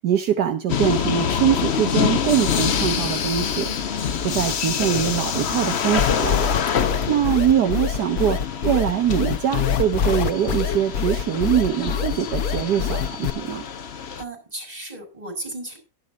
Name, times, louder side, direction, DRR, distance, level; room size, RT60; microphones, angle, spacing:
voice 1, 0.0-3.7 4.2-6.3 7.1-13.6, right 9 dB, 70° right, 6 dB, 1.5 m, -23 dB
sound 1, 0.7-14.2, left 7 dB, 50° left, 0.9 m, -26 dB
sound 2, 6.0-13.3, left 7 dB, 65° left, 1.5 m, -24 dB
voice 2, 6.5-7.2 14.2-15.8, right 2 dB, 20° right, 2 dB, 6.1 m, -36 dB
11.5 x 11.0 x 5.1 m, 0.30 s
omnidirectional pair, 1.8 m